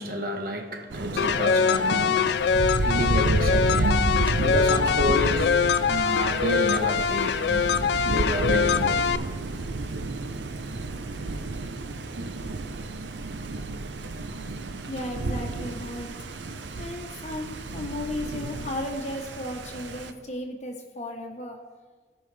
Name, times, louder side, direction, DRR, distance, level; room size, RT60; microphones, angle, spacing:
voice 1, 0.0-5.6 5.9-7.7 8.1-9.3 12.4-12.6, equal, 50° right, 1.1 m, -30 dB
Thunder, 0.9-20.1, right 3 dB, 80° right, 0.7 m, -31 dB
sound 1, 1.2-9.2, left 6 dB, 70° left, 0.3 m, -23 dB
voice 2, 14.9-16.1 16.8-21.6, left 1 dB, 40° left, 1.1 m, -35 dB
17.0 x 5.6 x 3.4 m
head